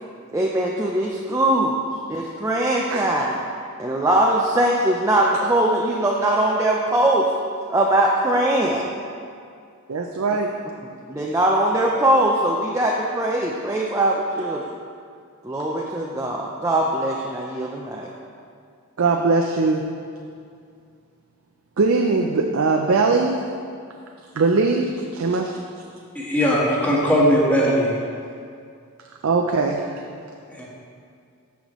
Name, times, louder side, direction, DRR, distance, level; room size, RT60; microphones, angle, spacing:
voice 1, 0.3-1.8 2.1-3.4 3.8-7.3 7.7-8.9 11.1-14.6 15.4-18.1, right 1 dB, 15° right, -2 dB, 0.5 m, -21 dB
voice 2, 9.9-10.5 19.0-19.8 21.8-23.4 24.4-25.6 29.2-30.0, right 3 dB, 65° right, 2 dB, 0.5 m, -20 dB
voice 3, 26.1-28.0 30.5-30.6, equal, 5° left, -6 dB, 1.4 m, -19 dB
13.0 x 5.7 x 3.1 m, 2.3 s
head